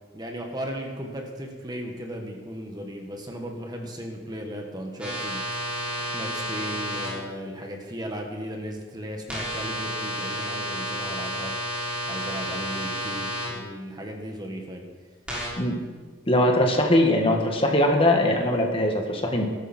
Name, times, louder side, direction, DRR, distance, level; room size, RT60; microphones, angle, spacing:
voice 1, 0.1-5.4 6.1-11.6 12.1-14.8, equal, 20° right, 2 dB, 1.7 m, -36 dB
sound 1, 5.0-7.1 9.3-13.4 15.3-15.5, equal, 5° right, 6.1 m, -31 dB
voice 2, 16.3-19.4, left 1 dB, 30° left, 2 dB, 2.0 m, -21 dB
19.5 x 12.5 x 4.5 m, 1.5 s
head